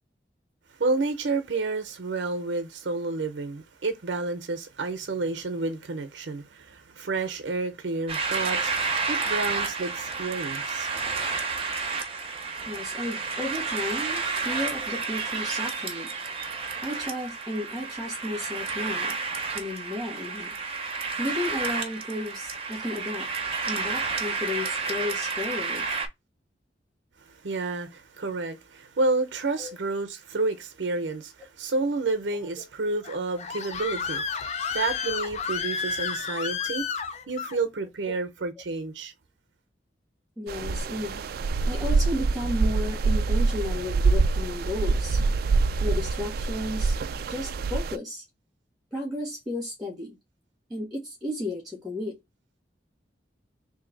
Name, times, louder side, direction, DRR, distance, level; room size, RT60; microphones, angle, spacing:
voice 1, 0.8-8.7 9.1-10.9 27.3-36.9 37.3-39.1, right 3 dB, 90° right, 0.7 m, -30 dB
sound 1, 8.1-26.1, right 4 dB, 35° right, 0.7 m, -31 dB
voice 2, 12.7-16.1 16.8-19.2 19.5-20.5 20.9-23.3 23.6-25.9 29.6-29.7 38.1-38.2 40.4-41.2 41.7-45.2 45.8-47.0 47.3-48.2 48.9-50.2 50.7-52.2, left 1 dB, ahead, 1.2 m, -33 dB
Screaming, 33.0-37.6, left 6 dB, 40° left, 0.4 m, -31 dB
sound 2, 40.5-48.0, right 4 dB, 55° right, 0.3 m, -25 dB
3.2 x 2.7 x 3.8 m
head